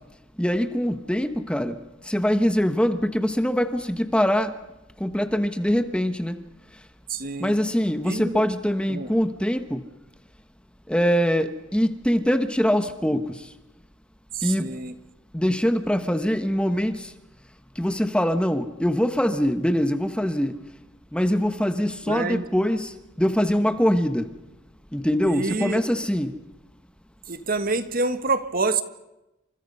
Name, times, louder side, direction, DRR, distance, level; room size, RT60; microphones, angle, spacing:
voice 1, 0.4-1.8 2.1-4.5 5.0-6.3 7.4-9.8 10.9-13.2 14.4-14.7 15.3-17.0 17.8-20.5 21.1-22.9 23.2-24.3 24.9-26.3, equal, 5° left, 1.2 m, -23 dB
voice 2, 7.1-7.6 8.0-8.4 8.9-9.1 14.3-14.9 22.1-22.5 25.2-25.8 27.3-28.8, right 3 dB, 45° right, 1.6 m, -27 dB
29.5 x 26.5 x 5.5 m
head